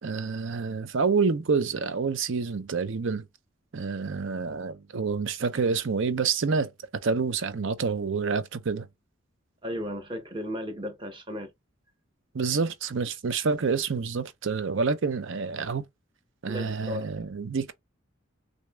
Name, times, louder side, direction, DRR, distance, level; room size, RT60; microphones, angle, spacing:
voice 1, 0.0-3.3 3.7-8.9 12.3-15.8 16.4-17.7, right 5 dB, 70° right, 0.6 m, -28 dB
voice 2, 9.6-11.5 16.5-17.1, left 1 dB, 25° right, 0.9 m, -35 dB
6.3 x 2.7 x 2.3 m
head